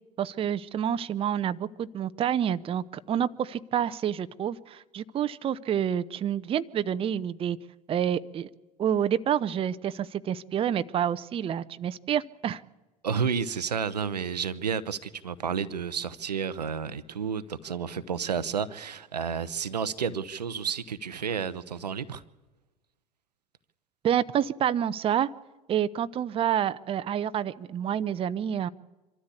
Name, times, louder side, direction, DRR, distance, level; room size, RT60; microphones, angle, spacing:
voice 1, 0.2-7.6 7.9-8.5 8.8-12.6 24.0-25.3 25.7-28.7, right 9 dB, 25° right, 14 dB, 0.6 m, -28 dB
voice 2, 13.0-22.2, right 6 dB, 80° right, 14 dB, 0.8 m, -31 dB
25.0 x 13.5 x 8.4 m, 1.1 s
figure-of-eight pair, 70°, 21 cm